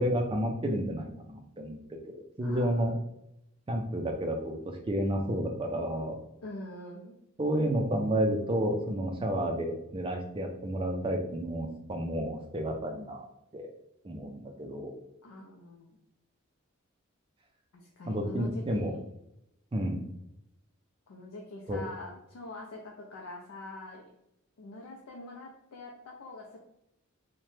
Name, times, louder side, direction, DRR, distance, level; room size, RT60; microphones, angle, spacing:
voice 1, 0.0-1.8 2.4-2.9 3.7-4.6 4.9-6.2 7.4-13.3 13.5-13.7 14.0-14.9 18.1-18.9 19.7-20.0 21.7-21.8, equal, 25° right, 2 dB, 0.4 m, -30 dB
voice 2, 2.4-2.9 6.4-7.2 15.2-16.0 17.7-19.0 21.1-24.0 24.6-26.6, left 2 dB, 85° left, 0 dB, 0.4 m, -44 dB
2.8 x 2.1 x 3.1 m, 0.81 s
head